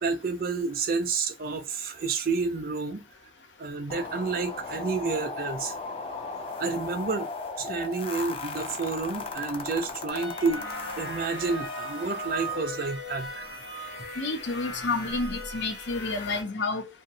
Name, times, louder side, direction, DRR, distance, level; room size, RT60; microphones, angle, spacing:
voice 1, 0.0-3.1 3.6-5.7 6.6-7.3 7.6-10.6 11.0-13.3, right 4 dB, 55° right, 0.5 m, -30 dB
sound 1, 3.9-12.6, left 4 dB, 30° left, 0.4 m, -37 dB
sound 2, 10.1-16.4, equal, 75° left, 1.2 m, -37 dB
voice 2, 14.2-16.9, left 3 dB, 90° left, 0.6 m, -30 dB
2.8 x 2.3 x 2.7 m
head